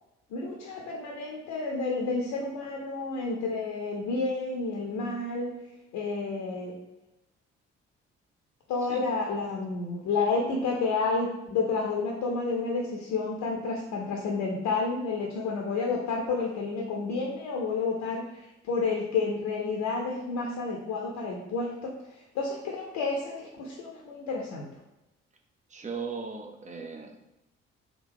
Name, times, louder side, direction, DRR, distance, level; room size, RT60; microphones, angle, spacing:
voice 1, 0.3-5.5 5.9-6.8 8.7-22.0 22.3-24.7, left 4 dB, 55° left, -1 dB, 0.7 m, -30 dB
voice 2, 25.7-27.2, right 5 dB, 20° right, 3 dB, 0.6 m, -37 dB
3.6 x 2.3 x 3.7 m, 0.96 s
figure-of-eight pair, 40°, 35 cm